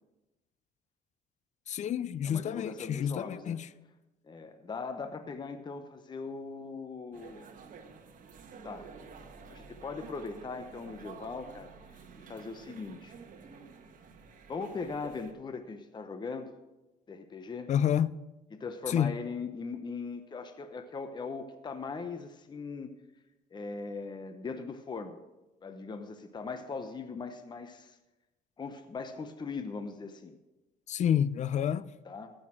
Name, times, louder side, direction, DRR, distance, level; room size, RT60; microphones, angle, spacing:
voice 1, 1.7-3.7 17.7-18.2 18.9-19.1 30.9-31.9, left 9 dB, 45° left, 0.5 m, -29 dB
voice 2, 2.2-3.6 4.2-7.5 8.6-8.9 9.5-12.0 12.3-13.1 14.5-16.5 17.1-17.7 18.5-22.9 23.5-25.2 25.6-28.0 28.6-30.4 32.0-32.3, left 4 dB, 25° left, 0.9 m, -40 dB
sound 1, 7.1-15.3, right 5 dB, 55° right, 1.5 m, -50 dB
14.5 x 6.4 x 6.2 m
cardioid pair, 110°, 17 cm